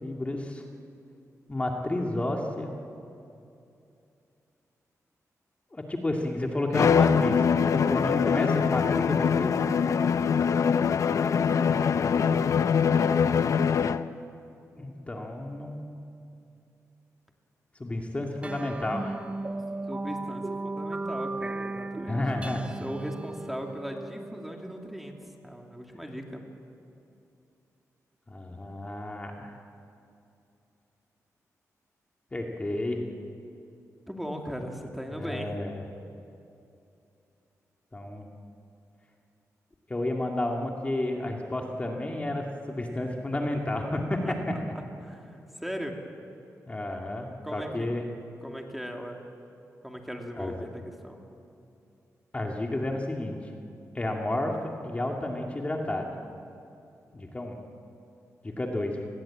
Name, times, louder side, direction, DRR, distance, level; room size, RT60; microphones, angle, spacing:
voice 1, 0.0-0.6 1.5-2.7 5.7-9.6 11.7-12.1 14.8-15.9 17.8-19.2 22.1-22.6 28.3-29.5 32.3-33.0 35.1-35.8 37.9-38.3 39.9-44.2 44.6-44.7 46.7-48.1 50.4-50.7 52.3-53.5 53.9-54.6 54.8-56.2 57.1-57.6 58.4-59.0, left 1 dB, 20° left, 1 dB, 2.4 m, -31 dB
Bowed string instrument, 6.7-14.1, left 6 dB, 65° left, 0.7 m, -23 dB
sound 1, 18.4-25.3, right 2 dB, 20° right, 0.6 m, -36 dB
voice 2, 19.9-22.2 22.8-26.4 34.1-35.6 44.2-44.4 45.0-46.0 47.4-47.9 48.4-49.2 49.8-51.2, equal, ahead, 2 dB, 2.6 m, -38 dB
28.0 x 20.5 x 8.8 m, 2.7 s
wide cardioid pair, 110°, 6 cm